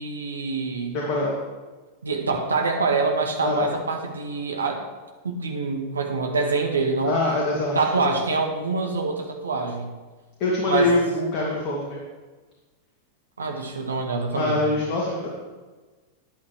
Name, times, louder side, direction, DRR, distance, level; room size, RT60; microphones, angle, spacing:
voice 1, 0.0-1.0 2.0-4.9 5.2-7.2 7.8-9.9 10.6-10.9 13.4-14.7, right 4 dB, 75° right, 3 dB, 1.7 m, -25 dB
voice 2, 0.9-1.4 3.4-3.7 7.0-8.0 10.4-12.0 14.3-15.3, left 2 dB, 40° left, -4 dB, 2.5 m, -24 dB
13.0 x 10.5 x 3.3 m, 1.3 s
figure-of-eight pair, 90°, 0 cm